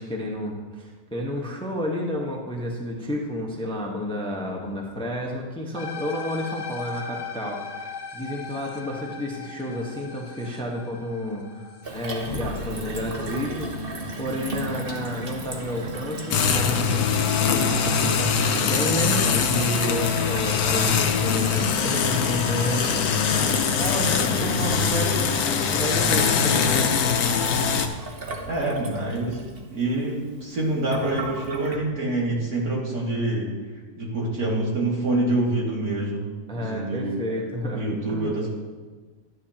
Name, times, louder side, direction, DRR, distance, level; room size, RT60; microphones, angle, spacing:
voice 1, 0.0-26.9 36.5-38.3, equal, 5° left, 0 dB, 0.9 m, -31 dB
sound 1, 5.7-14.2, left 6 dB, 40° left, 0.8 m, -39 dB
Gurgling / Water tap faucet / Sink (filling or washing), 11.8-31.8, right 1 dB, 40° right, 1.2 m, -34 dB
sound 2, 16.3-27.9, left 6 dB, 75° left, 1.2 m, -22 dB
voice 2, 28.5-33.5 34.0-36.2 36.5-37.2 37.7-38.5, right 2 dB, 70° right, -4 dB, 2.9 m, -26 dB
12.0 x 9.6 x 2.9 m, 1.4 s
omnidirectional pair, 1.6 m